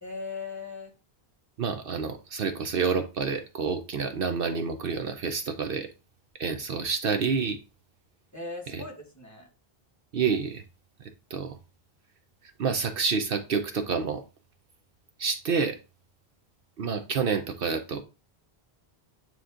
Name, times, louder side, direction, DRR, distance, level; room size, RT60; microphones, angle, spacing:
voice 1, 0.0-0.9 8.3-9.5, left 3 dB, 15° left, -1 dB, 1.9 m, -38 dB
voice 2, 1.6-5.9 6.4-7.6 8.7-8.8 10.1-10.6 11.3-11.6 12.6-14.2 15.2-15.8 16.8-18.0, right 5 dB, 65° right, 7 dB, 0.9 m, -28 dB
9.2 x 3.1 x 3.8 m, 0.31 s
omnidirectional pair, 1.0 m